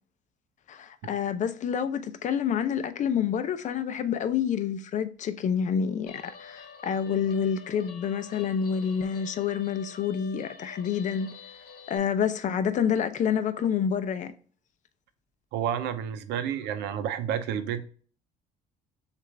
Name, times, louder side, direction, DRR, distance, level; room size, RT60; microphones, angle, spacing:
voice 1, 0.7-11.3 11.9-14.3, left 7 dB, 45° left, 0.5 m, -28 dB
Guitar, 6.1-12.0, left 6 dB, 65° left, 1.0 m, -48 dB
voice 2, 15.5-17.9, right 9 dB, 80° right, 0.6 m, -30 dB
6.6 x 2.5 x 3.2 m
cardioid pair, 110°, 17 cm